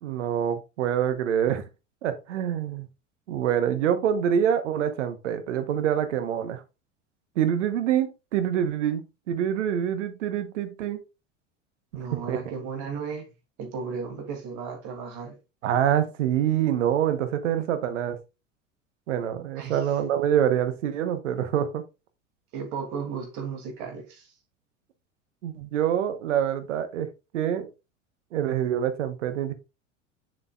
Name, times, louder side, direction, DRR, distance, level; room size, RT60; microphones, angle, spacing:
voice 1, 0.0-1.6 2.0-2.9 3.3-6.6 7.3-11.0 12.1-12.4 15.6-18.2 19.1-21.8 25.4-27.7 28.3-29.5, right 9 dB, 70° right, 1.2 m, -26 dB
voice 2, 11.9-13.3 13.6-15.3 19.5-19.8 22.5-24.3, right 5 dB, 50° right, 2.8 m, -34 dB
7.3 x 6.5 x 2.4 m
figure-of-eight pair, 80°, 38 cm